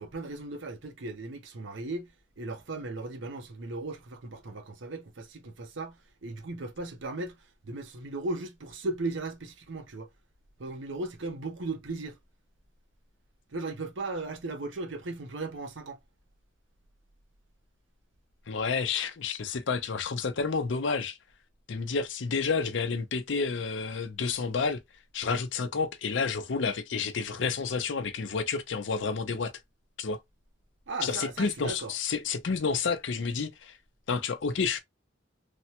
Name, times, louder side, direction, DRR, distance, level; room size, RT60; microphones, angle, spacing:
voice 1, 0.0-2.1 2.4-7.4 7.6-10.1 10.6-12.2 13.5-16.0 30.9-31.9, right 2 dB, 70° right, 0.7 m, -37 dB
voice 2, 18.5-21.2 21.7-24.8 25.1-29.5 30.0-30.2 31.0-33.8 34.1-34.8, left 5 dB, 70° left, 0.5 m, -30 dB
3.3 x 2.1 x 2.8 m
head